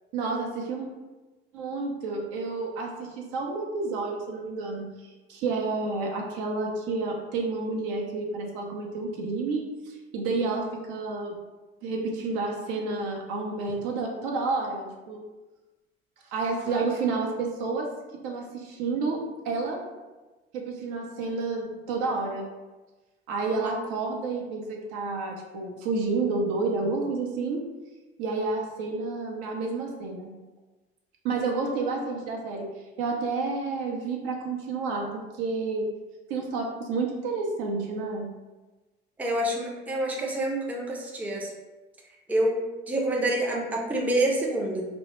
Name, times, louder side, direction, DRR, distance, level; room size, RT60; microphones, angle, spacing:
voice 1, 0.1-0.9 1.5-11.4 11.8-15.2 16.3-17.9 18.2-19.8 20.5-22.5 23.3-27.6 28.2-30.3 31.2-32.7 33.0-35.9 36.3-38.3 40.8-41.0, right 3 dB, 65° right, 0 dB, 0.6 m, -30 dB
voice 2, 39.2-41.5 42.3-42.6 42.9-44.9, right 1 dB, 5° right, -2 dB, 0.4 m, -27 dB
2.0 x 2.0 x 3.0 m, 1.2 s
hypercardioid pair, 60°, 32 cm